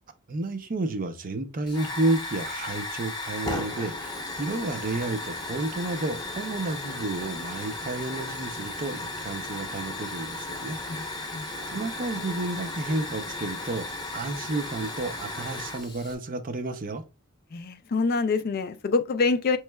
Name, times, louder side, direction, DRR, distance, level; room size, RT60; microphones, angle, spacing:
voice 1, 0.3-13.9 14.1-17.0, right 2 dB, 40° right, 0.5 m, -31 dB
Hiss / Fire, 1.7-16.1, left 2 dB, 20° left, 0.8 m, -35 dB
voice 2, 17.5-19.6, left 4 dB, 45° left, 0.4 m, -25 dB
5.5 x 3.1 x 2.2 m
head